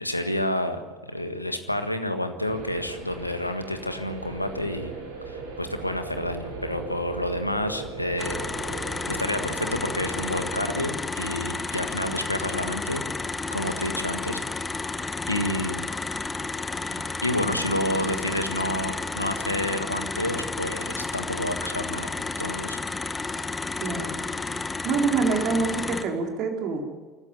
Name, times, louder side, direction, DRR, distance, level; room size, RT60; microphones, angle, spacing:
voice 1, 0.0-4.9 5.3-8.5 9.1-13.0 13.5-14.4 15.3-15.9 16.9-22.1 22.4-22.8, left 1 dB, 90° left, 8 dB, 1.5 m, -29 dB
sound 1, 2.4-10.7, right 4 dB, 65° right, 4.6 m, -38 dB
sound 2, 8.2-26.0, left 3 dB, 15° left, 1.7 m, -32 dB
voice 2, 23.8-24.3 24.8-26.8, right 4 dB, 50° right, 2 dB, 4.0 m, -26 dB
25.5 x 14.5 x 9.3 m, 1.3 s
figure-of-eight pair, 65°, 0 cm